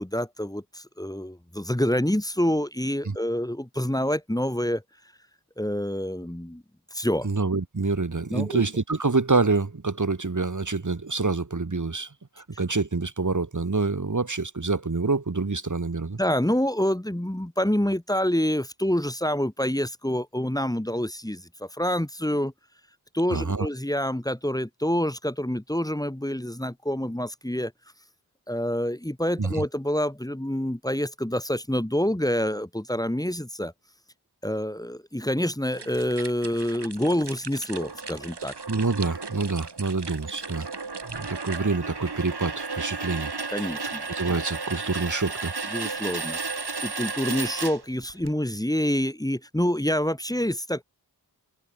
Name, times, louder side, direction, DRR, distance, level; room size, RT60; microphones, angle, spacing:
voice 1, 0.0-4.8 5.6-6.6 6.9-7.3 8.3-8.6 16.2-22.5 23.1-27.7 28.5-33.7 34.4-38.5 43.5-44.1 45.7-46.4 46.8-50.8, equal, 10° left, 2.5 m, -27 dB
voice 2, 7.2-12.1 12.4-16.2 23.3-23.7 29.4-29.6 38.7-40.7 41.1-43.3 44.1-45.5, right 3 dB, 50° right, 2.5 m, -26 dB
sound 1, 35.7-41.6, right 4 dB, 90° right, 5.3 m, -41 dB
sound 2, 37.7-48.3, right 4 dB, 70° right, 7.2 m, -34 dB
wide cardioid pair, 65°, 40 cm